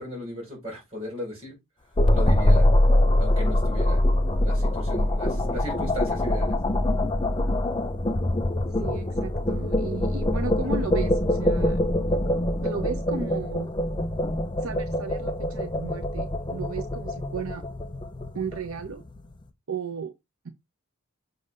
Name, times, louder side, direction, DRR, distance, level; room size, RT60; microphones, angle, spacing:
voice 1, 0.0-1.6 2.1-2.7 3.2-4.1 4.4-6.8, left 1 dB, 30° right, 4.7 m, -36 dB
sound 1, 2.0-19.2, left 1 dB, 20° left, 0.6 m, -24 dB
voice 2, 8.8-11.8 12.6-13.7 14.6-17.6 18.3-19.0 19.7-20.1, right 5 dB, 70° right, 0.7 m, -34 dB
6.3 x 2.7 x 5.5 m
head